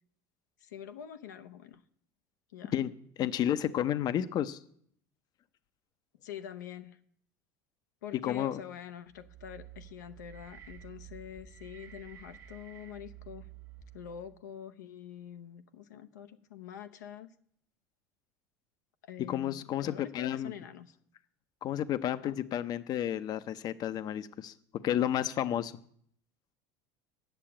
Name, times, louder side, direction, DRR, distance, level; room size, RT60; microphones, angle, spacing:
voice 1, 0.6-1.8 2.5-2.8 6.2-7.0 8.0-13.5 13.9-17.3 19.0-21.0 22.2-22.4, left 9 dB, 90° left, 8 dB, 0.7 m, -46 dB
voice 2, 3.2-4.6 8.2-8.6 19.3-20.5 21.6-24.5 24.8-25.7, left 11 dB, 45° left, 14 dB, 0.6 m, -31 dB
sound 1, 9.1-14.4, right 10 dB, 30° right, 1.3 m, -51 dB
8.9 x 6.8 x 8.7 m, 0.65 s
hypercardioid pair, 95°, 9 cm